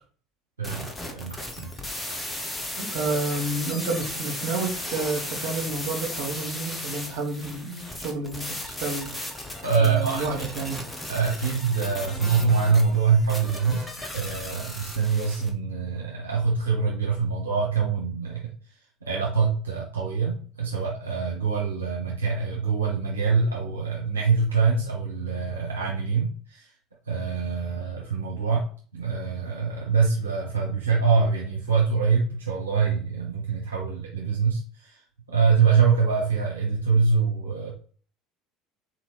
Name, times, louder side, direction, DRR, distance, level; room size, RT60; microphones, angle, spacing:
sound 1, 0.6-15.5, left 1 dB, 10° left, 1.0 m, -36 dB
voice 1, 0.6-1.7 9.6-10.5 11.1-18.4 19.0-26.7 27.1-28.6 28.9-35.0 35.3-37.7, right 5 dB, 85° right, -4 dB, 0.7 m, -24 dB
voice 2, 2.8-9.1 9.8-10.9, right 3 dB, 55° right, 0 dB, 1.2 m, -30 dB
4.1 x 2.8 x 3.1 m, 0.42 s
figure-of-eight pair, 65°, 0 cm